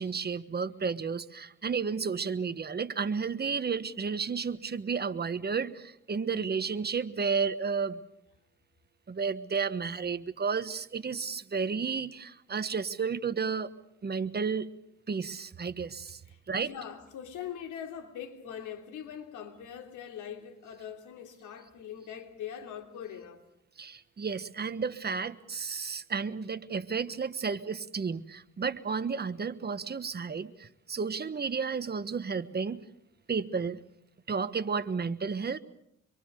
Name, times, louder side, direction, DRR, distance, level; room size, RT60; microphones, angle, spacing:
voice 1, 0.0-8.0 9.1-13.7 14.0-14.7 15.1-16.2 16.5-16.7 23.8-32.8 33.3-33.8 34.3-35.6, right 5 dB, 35° right, 1.4 m, -32 dB
voice 2, 16.2-23.4, left 9 dB, 85° left, 3.3 m, -42 dB
26.0 x 23.5 x 6.8 m
cardioid pair, 90°, 30 cm